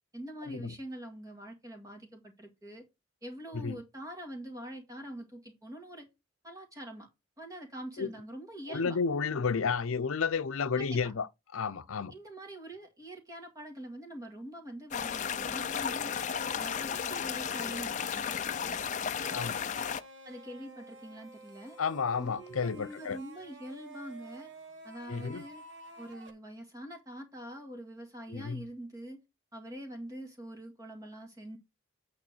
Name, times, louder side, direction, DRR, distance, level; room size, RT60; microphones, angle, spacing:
voice 1, 0.1-2.8 3.2-6.1 6.4-7.1 7.4-9.0 10.8-11.1 12.1-16.1 16.6-18.8 20.2-21.8 22.2-24.5 24.8-25.6 26.0-29.2 29.5-31.6, right 1 dB, 15° right, 1.9 m, -44 dB
voice 2, 8.7-11.3 11.5-12.1 19.3-19.6 21.8-23.2 25.1-25.5 28.3-28.6, left 5 dB, 80° left, 0.6 m, -31 dB
sound 1, 14.9-20.0, left 7 dB, 35° left, 0.4 m, -34 dB
sound 2, 19.3-26.3, right 2 dB, 55° right, 1.2 m, -51 dB
8.9 x 3.2 x 6.2 m
head